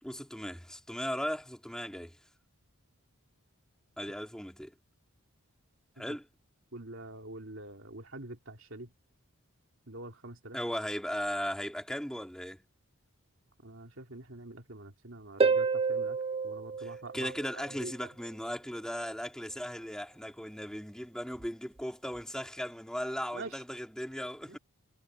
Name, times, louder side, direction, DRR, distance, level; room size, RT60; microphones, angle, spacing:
voice 1, 0.0-2.2 4.0-4.7 6.0-6.3 10.5-12.6 16.8-24.6, equal, 5° left, 3.2 m, -37 dB
voice 2, 6.7-8.9 9.9-10.6 13.6-16.2 16.4-18.1 23.3-23.6 24.5-24.6, right 2 dB, 60° right, 3.0 m, -45 dB
Harp, 15.4-17.9 21.4-21.5, right 5 dB, 25° right, 0.6 m, -30 dB
head